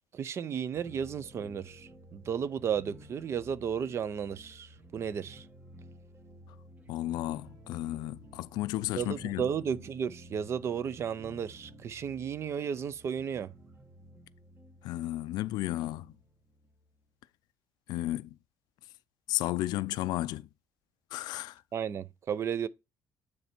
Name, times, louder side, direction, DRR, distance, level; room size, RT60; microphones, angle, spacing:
voice 1, 0.1-5.5 9.0-13.5 21.7-22.7, right 7 dB, 40° right, 0.5 m, -34 dB
sound 1, 0.7-17.1, equal, 25° right, 1.1 m, -54 dB
voice 2, 6.9-9.4 14.8-16.1 17.9-18.3 19.3-20.5 21.1-21.6, left 15 dB, 90° left, 0.4 m, -33 dB
9.5 x 3.3 x 4.3 m
cardioid pair, 150°, 7 cm